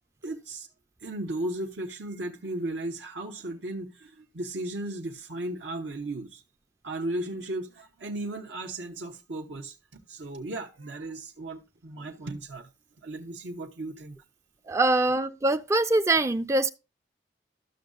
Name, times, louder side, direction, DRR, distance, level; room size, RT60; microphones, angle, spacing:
voice 1, 0.2-0.7 1.0-6.4 6.8-9.8 10.1-12.7 13.0-14.2, right 1 dB, 85° right, 1.0 m, -35 dB
voice 2, 14.7-16.7, right 2 dB, 15° right, 0.3 m, -23 dB
13.0 x 6.3 x 2.4 m
head